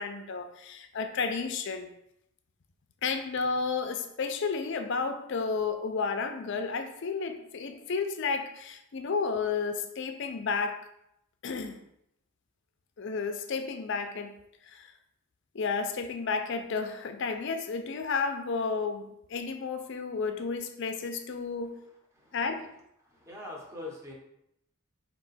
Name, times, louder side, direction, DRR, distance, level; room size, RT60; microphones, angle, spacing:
voice 1, 0.0-1.9 3.0-10.9 11.4-11.8 13.0-14.3 14.7-14.9 15.5-21.8 22.3-22.7, left 5 dB, 55° left, 7 dB, 0.5 m, -32 dB
voice 2, 23.2-24.1, left 2 dB, 15° right, -2 dB, 0.9 m, -42 dB
4.6 x 2.9 x 4.0 m, 0.79 s
head